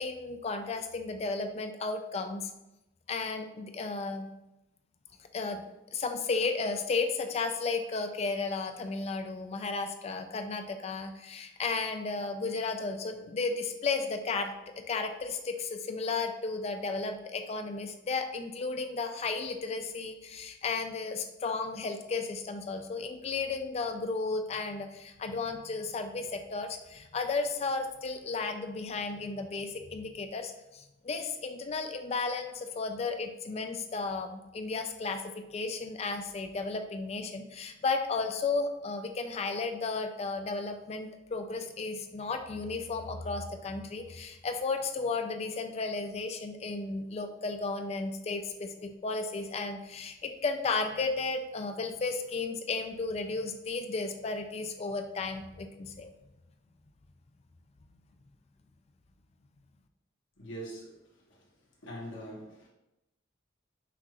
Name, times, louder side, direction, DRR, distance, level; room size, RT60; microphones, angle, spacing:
voice 1, 0.0-2.5 3.1-4.3 5.3-5.6 5.9-14.5 14.9-35.2 35.5-56.1, left 4 dB, 35° left, 6 dB, 0.3 m, -34 dB
voice 2, 60.4-60.9 61.3-61.5 61.8-62.7, right 1 dB, 85° left, -4 dB, 1.1 m, -42 dB
5.7 x 2.4 x 2.9 m, 0.93 s
head